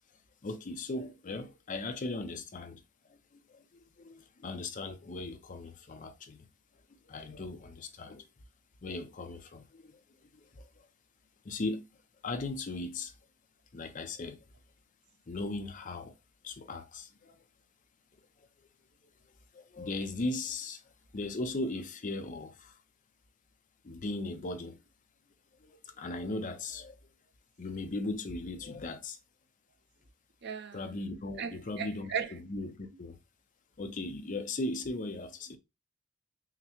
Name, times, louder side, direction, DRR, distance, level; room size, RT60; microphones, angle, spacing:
voice 1, 0.4-2.8 3.1-6.5 7.1-8.3 8.8-10.0 10.3-10.7 11.4-11.8 12.2-13.1 13.7-14.4 15.3-16.1 16.4-17.4 19.5-20.8 21.1-22.7 23.8-24.8 25.6-26.9 27.6-29.2 30.7-33.2 33.8-35.6, left 2 dB, 40° left, 0.6 m, -38 dB
voice 2, 30.4-30.8 31.4-32.3, right 7 dB, 55° right, 0.7 m, -36 dB
5.8 x 2.1 x 2.9 m
head